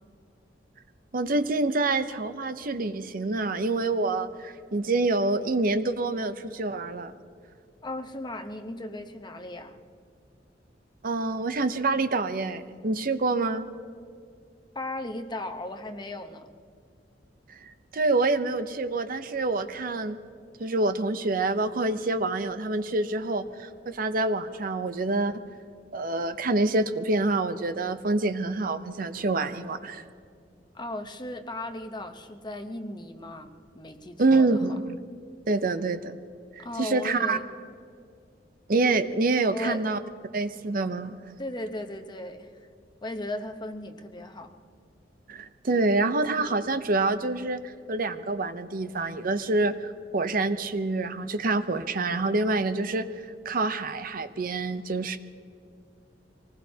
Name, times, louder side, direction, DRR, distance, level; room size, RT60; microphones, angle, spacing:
voice 1, 1.1-7.1 11.0-13.7 17.6-20.2 20.6-25.4 25.9-30.0 34.2-35.0 35.5-36.1 36.5-37.4 38.7-40.0 40.3-41.2 45.3-53.1 53.4-55.2, right 3 dB, 50° right, 10 dB, 0.7 m, -26 dB
voice 2, 7.8-9.8 14.7-16.5 30.7-34.8 36.6-37.5 39.5-39.9 41.4-42.5 43.0-44.6, left 1 dB, 25° left, 7 dB, 0.9 m, -36 dB
25.0 x 19.5 x 2.8 m, 2.3 s
head